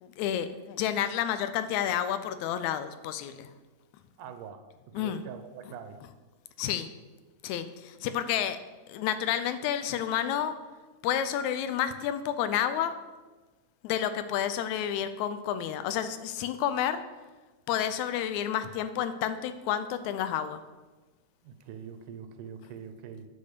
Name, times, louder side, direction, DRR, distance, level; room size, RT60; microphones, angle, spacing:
voice 1, 0.0-3.5 4.9-5.2 6.6-6.9 7.4-8.6 8.9-10.5 11.0-13.0 13.8-17.0 17.7-20.6, left 10 dB, 80° left, 11 dB, 1.8 m, -30 dB
voice 2, 4.2-6.0 21.4-23.3, right 7 dB, 80° right, 8 dB, 2.2 m, -44 dB
10.0 x 4.3 x 6.7 m, 1.2 s
omnidirectional pair, 3.7 m